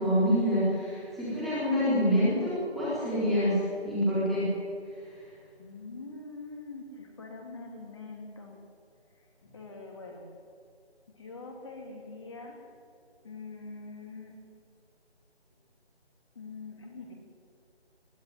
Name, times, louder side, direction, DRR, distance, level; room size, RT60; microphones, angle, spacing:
voice 1, 0.0-4.5, equal, ahead, -12 dB, 3.9 m, -26 dB
voice 2, 5.6-8.6 9.4-10.3 11.1-12.8 13.2-14.3 16.3-17.1, left 3 dB, 25° left, 1 dB, 3.1 m, -44 dB
22.0 x 13.0 x 9.4 m, 2.2 s
figure-of-eight pair, 165°, 33 cm